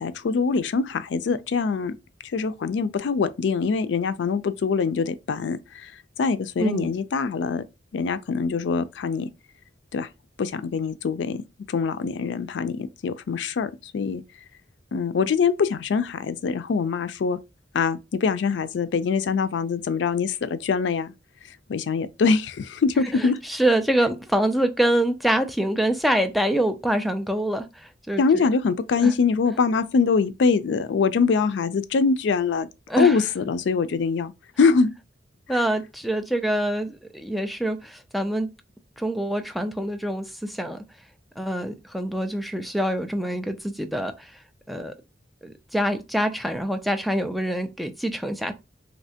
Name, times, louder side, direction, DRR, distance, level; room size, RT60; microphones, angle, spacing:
voice 1, 0.0-1.9 2.3-5.9 6.2-7.6 7.9-9.3 9.9-10.1 10.4-11.4 11.7-14.2 14.9-17.4 17.7-21.1 21.7-23.4 28.2-32.7 33.0-34.3 34.6-34.9, left 5 dB, 80° left, 0.4 m, -23 dB
voice 2, 6.6-6.9 23.1-28.5 29.0-29.1 32.9-33.2 35.5-38.5 39.0-40.8 41.4-44.4 44.7-44.9 45.4-48.5, right 1 dB, ahead, 0.3 m, -25 dB
3.2 x 2.8 x 2.7 m
head